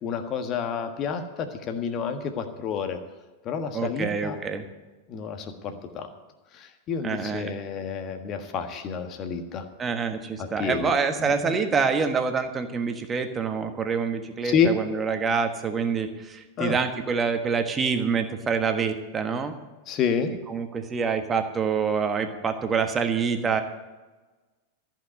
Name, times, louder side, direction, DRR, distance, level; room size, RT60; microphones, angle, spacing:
voice 1, 0.0-3.0 3.4-4.4 5.1-6.1 6.5-9.7 10.4-10.9 11.2-11.5 14.4-14.7 16.6-16.8 19.9-20.3, left 6 dB, 35° left, 7 dB, 1.5 m, -29 dB
voice 2, 3.7-4.6 7.0-7.5 9.8-19.5 20.5-23.6, right 5 dB, 20° right, 7 dB, 1.4 m, -26 dB
14.0 x 6.1 x 9.5 m, 1.2 s
figure-of-eight pair, 90°, 0 cm